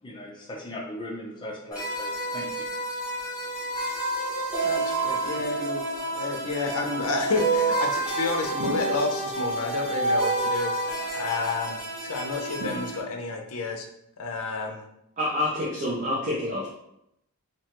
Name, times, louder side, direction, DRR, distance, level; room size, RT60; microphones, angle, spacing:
voice 1, 0.0-2.7, left 1 dB, 20° left, -1 dB, 0.5 m, -38 dB
sound 1, 1.7-13.0, right 2 dB, 5° right, 1.0 m, -29 dB
voice 2, 4.6-5.8 6.1-13.9 14.2-14.8, left 3 dB, 75° left, 2 dB, 0.5 m, -30 dB
sound 2, 8.6-9.4 12.6-13.5, right 3 dB, 85° right, 0.4 m, -37 dB
voice 3, 15.2-16.7, left 1 dB, 35° right, -5 dB, 0.5 m, -27 dB
2.8 x 2.2 x 2.9 m, 0.79 s
head